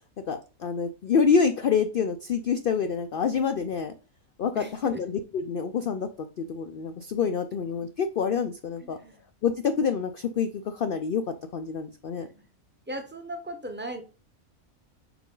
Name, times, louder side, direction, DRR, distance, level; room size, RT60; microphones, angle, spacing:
voice 1, 0.3-3.9 4.4-9.0 9.4-12.3, left 6 dB, 60° left, 9 dB, 0.6 m, -27 dB
voice 2, 4.5-5.0 8.8-9.2 12.3-12.4 12.9-14.0, right 1 dB, 10° right, 6 dB, 0.8 m, -37 dB
6.0 x 5.0 x 3.8 m, 0.34 s
omnidirectional pair, 1.4 m